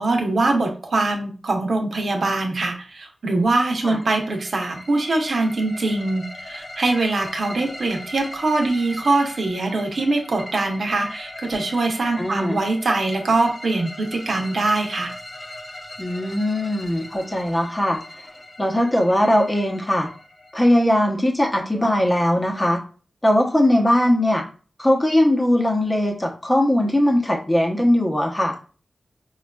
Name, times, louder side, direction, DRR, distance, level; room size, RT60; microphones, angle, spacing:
voice 1, 0.0-15.1, right 2 dB, 65° right, 2 dB, 0.7 m, -23 dB
sound 1, 3.6-21.3, left 2 dB, 40° left, 1.0 m, -40 dB
voice 2, 12.2-12.6 16.0-18.0 18.6-20.1 20.5-22.8 23.2-24.4 24.8-28.5, left 1 dB, 15° left, 2 dB, 0.7 m, -20 dB
5.0 x 2.3 x 2.2 m, 0.37 s
wide cardioid pair, 130°, 0 cm